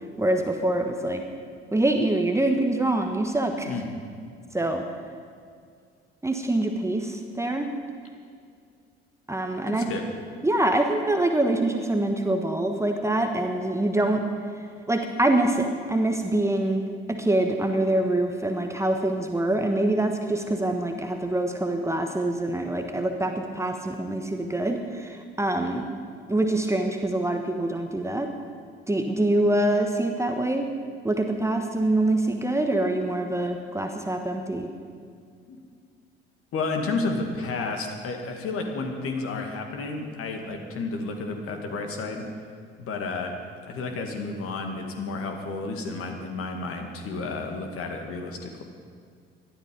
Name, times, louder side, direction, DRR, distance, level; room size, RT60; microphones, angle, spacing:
voice 1, 0.2-1.2 1.7-3.7 4.5-4.9 6.2-7.7 9.3-9.9 10.4-14.2 14.9-16.8 17.1-25.9 26.3-28.3 28.9-30.7 31.0-34.7, right 1 dB, 10° right, 4 dB, 1.3 m, -25 dB
voice 2, 3.7-4.0 9.7-10.0 35.5-35.6 36.5-42.3 42.8-43.3 43.7-48.6, left 3 dB, 45° left, 3 dB, 2.3 m, -31 dB
18.5 x 12.5 x 5.3 m, 2.2 s
figure-of-eight pair, 55°, 31 cm